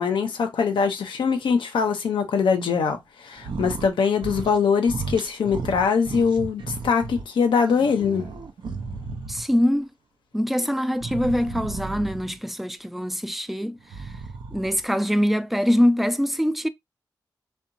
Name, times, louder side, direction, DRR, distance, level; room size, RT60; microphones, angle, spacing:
voice 1, 0.0-8.2, left 6 dB, 85° left, 0.5 m, -22 dB
sound 1, 3.4-3.9 4.2-4.6 4.9-7.2 7.7-9.6 11.0-12.4 13.8-14.9, right 4 dB, 70° right, 0.5 m, -34 dB
voice 2, 9.3-9.9 10.3-14.1 14.5-16.7, equal, ahead, 0.3 m, -23 dB
2.8 x 2.1 x 2.5 m
cardioid pair, 45°, 8 cm